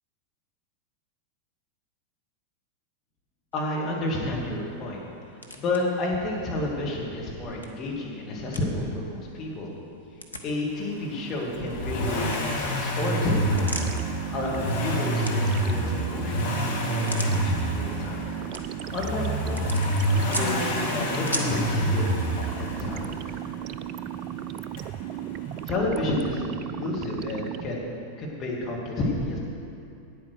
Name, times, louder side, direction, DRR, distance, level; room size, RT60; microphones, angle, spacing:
sound 1, 3.5-21.7, equal, 90° left, 1.0 m, -42 dB
voice 1, 3.5-5.0 5.3-9.7 10.4-13.7 14.3-18.3 18.9-23.2 23.5-23.6 25.6-27.9 28.2-29.4, left 2 dB, 30° left, -3 dB, 2.5 m, -30 dB
Accelerating revving vroom, 11.5-23.5 24.8-24.9, equal, 60° left, 2.0 m, -27 dB
sound 2, 13.5-27.6, right 11 dB, 40° right, 0.3 m, -35 dB
9.2 x 9.0 x 6.6 m, 2.6 s
figure-of-eight pair, 90°, 0 cm